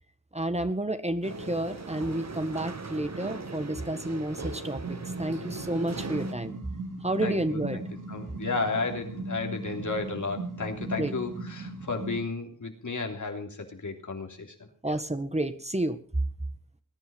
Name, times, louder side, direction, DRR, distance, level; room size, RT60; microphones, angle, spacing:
voice 1, 0.3-6.6 7.0-7.8 11.0-11.1 14.8-16.0, right 1 dB, 20° right, 10 dB, 1.7 m, -30 dB
sound 1, 1.2-6.3, right 3 dB, 55° right, 2.0 m, -39 dB
sound 2, 4.8-12.2, right 2 dB, 85° right, 4.4 m, -38 dB
voice 2, 7.2-7.8 8.1-14.5 14.8-14.9, left 3 dB, 70° left, 3 dB, 3.3 m, -33 dB
20.5 x 10.5 x 5.4 m, 0.42 s
cardioid pair, 50°, 31 cm